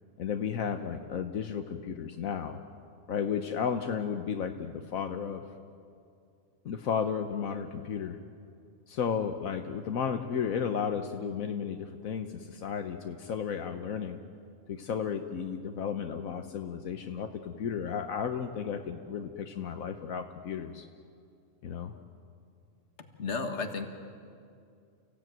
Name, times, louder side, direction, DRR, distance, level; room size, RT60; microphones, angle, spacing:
voice 1, 0.2-2.6 3.1-5.4 6.6-8.2 8.9-14.2 14.7-20.8 21.6-21.9, left 7 dB, 80° left, 6 dB, 1.4 m, -33 dB
voice 2, 23.2-23.9, left 4 dB, 55° left, 6 dB, 1.9 m, -32 dB
30.0 x 16.0 x 9.1 m, 2.4 s
omnidirectional pair, 1.4 m